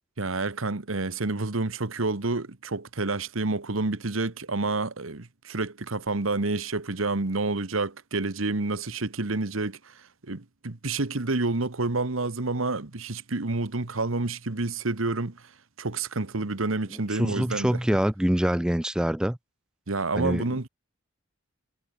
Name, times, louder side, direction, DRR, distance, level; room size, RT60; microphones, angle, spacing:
voice 1, 0.2-15.5 15.8-17.8 19.9-20.7, right 3 dB, 85° right, 1.4 m, -29 dB
voice 2, 17.1-19.4 20.2-20.4, equal, 5° right, 0.3 m, -25 dB
head